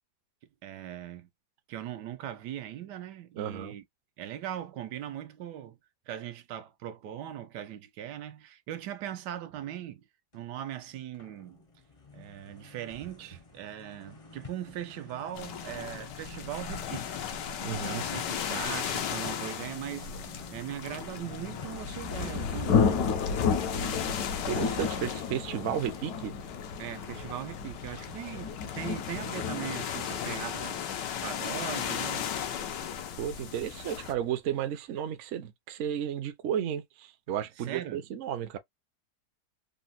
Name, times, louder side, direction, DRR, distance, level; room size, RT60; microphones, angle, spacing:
voice 1, 0.6-1.3 1.7-3.9 4.2-5.8 6.1-10.0 10.3-11.6 12.1-17.3 17.8-20.1 20.5-23.1 26.8-30.8 31.2-32.3 37.6-38.0, right 11 dB, 85° right, 1.2 m, -39 dB
voice 2, 3.4-3.7 17.6-18.1 24.5-26.3 33.2-38.6, right 9 dB, 65° right, 0.7 m, -33 dB
sound 1, 10.3-10.5 11.0-21.9, left 3 dB, 35° left, 0.5 m, -49 dB
sound 2, 15.3-34.1, left 9 dB, 90° left, 1.4 m, -37 dB
Thunder, 21.4-32.9, left 6 dB, 70° left, 1.3 m, -32 dB
3.9 x 2.1 x 2.5 m
omnidirectional pair, 1.8 m